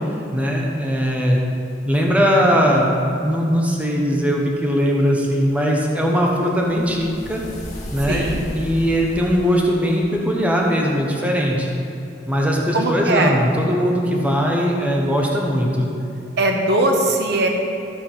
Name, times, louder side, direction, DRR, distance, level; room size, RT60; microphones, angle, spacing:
voice 1, 0.3-1.4 1.9-7.4 7.9-8.3 8.5-11.7 12.3-15.9, equal, 10° right, -2 dB, 1.0 m, -19 dB
sound 1, 5.2-10.6, equal, 40° left, 2.2 m, -36 dB
voice 2, 8.1-8.4 12.7-13.3 16.4-17.5, right 2 dB, 65° right, 2 dB, 0.9 m, -19 dB
14.0 x 4.9 x 5.6 m, 2.7 s
head